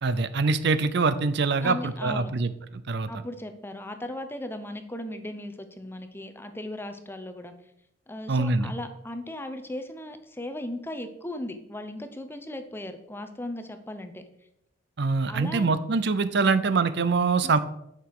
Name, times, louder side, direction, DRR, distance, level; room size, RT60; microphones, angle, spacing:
voice 1, 0.0-3.1 8.3-8.7 15.0-17.6, right 4 dB, 55° right, 12 dB, 0.5 m, -24 dB
voice 2, 1.6-2.3 3.1-7.5 8.1-14.2 15.3-15.8 17.4-17.6, left 1 dB, 10° left, 8 dB, 0.7 m, -37 dB
10.0 x 5.9 x 4.8 m, 0.80 s
head